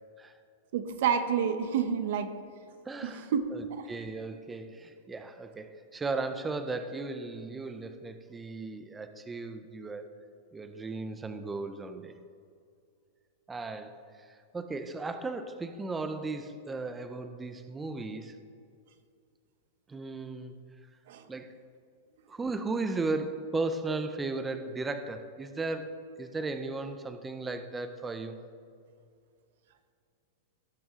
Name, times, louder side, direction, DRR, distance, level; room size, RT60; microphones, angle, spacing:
voice 1, 0.7-2.3 3.0-3.9 21.1-21.2, right 7 dB, 60° right, 10 dB, 0.8 m, -29 dB
voice 2, 2.9-10.1 10.5-12.2 13.5-18.4 19.9-20.6 21.3-21.5 22.3-28.5, right 3 dB, 10° right, 9 dB, 0.4 m, -36 dB
17.0 x 6.1 x 3.7 m, 2.4 s
supercardioid pair, 170°, 0 cm